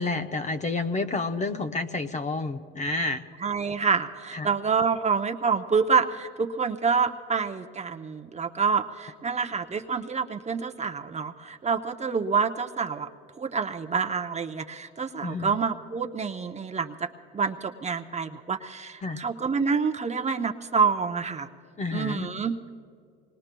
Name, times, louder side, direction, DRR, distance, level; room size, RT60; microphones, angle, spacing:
voice 1, 0.0-3.3 4.3-4.5 15.2-15.6 19.0-19.2 21.8-22.3, left 3 dB, 25° left, 7 dB, 0.7 m, -29 dB
voice 2, 3.4-13.1 13.4-17.1 17.3-21.5 21.9-22.5, right 5 dB, 25° right, 5 dB, 0.8 m, -27 dB
26.0 x 20.5 x 2.3 m, 2.3 s
hypercardioid pair, 75°, 30 cm